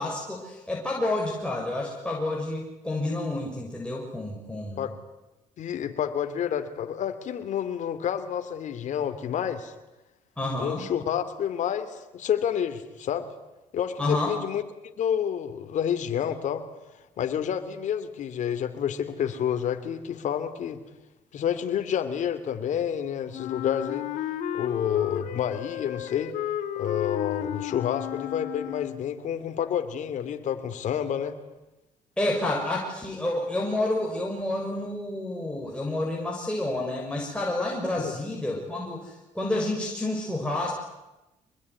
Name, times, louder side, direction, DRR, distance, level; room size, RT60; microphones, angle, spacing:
voice 1, 0.0-4.8 10.4-10.9 14.0-14.4 32.2-40.7, left 2 dB, 5° left, -2 dB, 6.6 m, -29 dB
voice 2, 5.6-9.7 10.6-13.3 13.7-14.6 15.0-16.6 17.2-20.8 21.3-24.1 24.5-26.3 26.8-31.3 38.0-38.1, left 9 dB, 65° left, 8 dB, 3.0 m, -29 dB
Wind instrument woodwind instrument, 23.3-29.1, left 11 dB, 80° left, 2.8 m, -33 dB
26.0 x 21.5 x 9.8 m, 0.99 s
cardioid pair, 85°, 14 cm